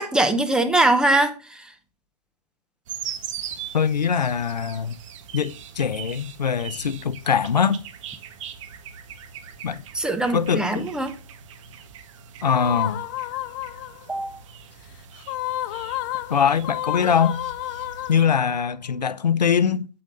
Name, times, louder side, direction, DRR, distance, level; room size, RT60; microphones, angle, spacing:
voice 1, 0.0-1.7 9.9-11.1 14.1-14.4, right 2 dB, 5° right, 0.8 m, -22 dB
sound 1, 2.9-18.3, right 8 dB, 50° right, 1.2 m, -41 dB
voice 2, 3.7-5.0 5.3-7.8 9.6-9.8 10.3-10.8 12.4-13.0 16.3-17.4 18.1-19.9, left 7 dB, 85° left, 0.7 m, -22 dB
sound 2, 12.4-14.1 15.2-18.6, left 16 dB, 30° left, 0.4 m, -31 dB
8.7 x 7.7 x 2.6 m
hypercardioid pair, 125°, 21 cm